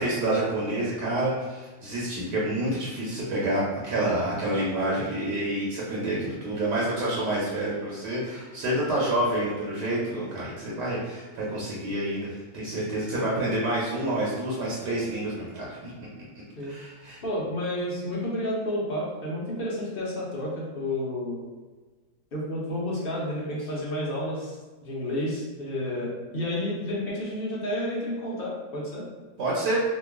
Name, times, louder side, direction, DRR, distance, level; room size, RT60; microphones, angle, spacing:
voice 1, 0.0-15.9 16.6-17.2 29.4-29.8, right 1 dB, 75° right, -5 dB, 1.3 m, -28 dB
voice 2, 17.2-21.4 22.3-24.6 24.8-29.1, left 1 dB, 55° left, -5 dB, 0.6 m, -30 dB
3.0 x 2.4 x 3.4 m, 1.3 s
omnidirectional pair, 1.9 m